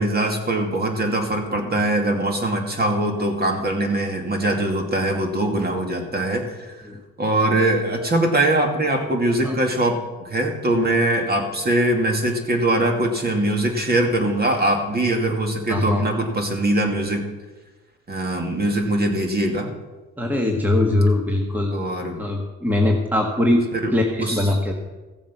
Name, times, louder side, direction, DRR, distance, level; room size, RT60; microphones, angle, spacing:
voice 1, 0.0-6.7 7.2-17.2 18.1-19.7 21.7-22.2 23.7-23.9 24.2-24.5, right 1 dB, 30° right, 3 dB, 2.4 m, -22 dB
voice 2, 15.7-16.1 20.2-21.8 22.2-23.6 23.9-24.7, left 1 dB, 5° right, 1 dB, 1.5 m, -21 dB
15.5 x 7.2 x 6.0 m, 1.2 s
cardioid pair, 90°, 30 cm